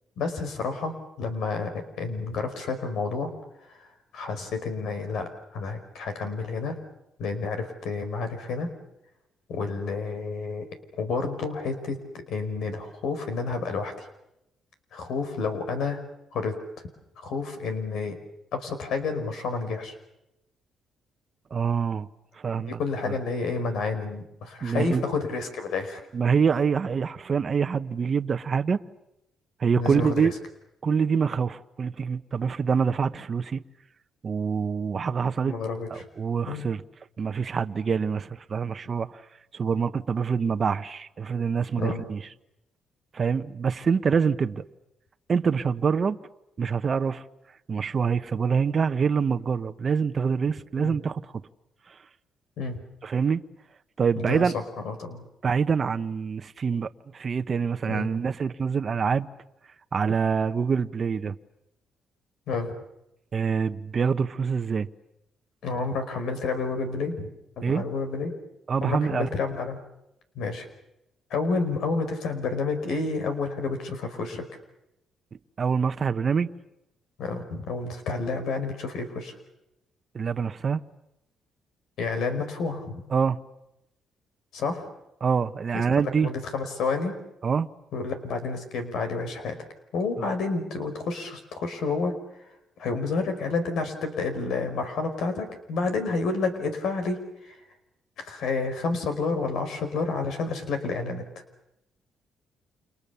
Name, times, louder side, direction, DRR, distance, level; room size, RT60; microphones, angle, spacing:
voice 1, 0.2-3.3 3.7-3.9 4.1-6.8 7.2-8.7 9.5-10.6 11.0-14.0 14.9-16.0 16.3-16.6 17.2-18.2 18.5-19.9 22.7-26.0 29.8-30.2 35.4-36.0 36.5-36.6 41.8-42.0 50.8-51.0 52.6-52.8 54.2-55.2 57.9-58.1 62.5-62.7 65.6-67.3 67.6-68.3 68.8-69.8 70.3-70.7 71.3-74.4 77.2-79.3 82.0-83.0 84.5-84.9 85.7-85.8 86.2-87.1 87.9-89.6 89.9-92.1 92.8-97.6 98.2-101.3, left 4 dB, 75° left, 5.0 m, -30 dB
voice 2, 21.5-22.1 22.4-22.8 23.1-23.2 24.6-25.0 26.1-28.8 29.6-30.3 30.8-33.6 34.2-35.6 35.9-36.8 37.2-39.2 39.5-42.3 43.1-44.6 45.3-46.2 46.6-47.2 47.7-51.2 53.0-53.4 54.0-54.5 55.4-59.3 59.9-61.3 63.3-64.9 67.6-67.8 68.7-69.3 75.6-76.5 80.1-80.8 83.1-83.4 85.2-86.3 87.4-87.7, right 6 dB, 45° right, 1.1 m, -25 dB
30.0 x 27.5 x 7.1 m
cardioid pair, 90°, 0 cm